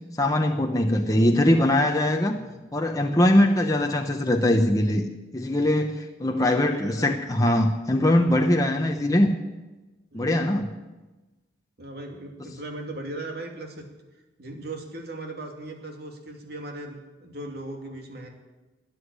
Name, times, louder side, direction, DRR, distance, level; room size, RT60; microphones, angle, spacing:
voice 1, 0.2-2.4 2.7-5.1 5.3-9.3 10.1-10.7, left 1 dB, 20° left, 3 dB, 0.9 m, -21 dB
voice 2, 2.3-2.6 6.3-7.2 10.1-10.6 11.8-13.9 14.4-18.3, right 2 dB, 55° right, 2 dB, 2.7 m, -38 dB
13.5 x 10.0 x 9.8 m, 1.1 s
head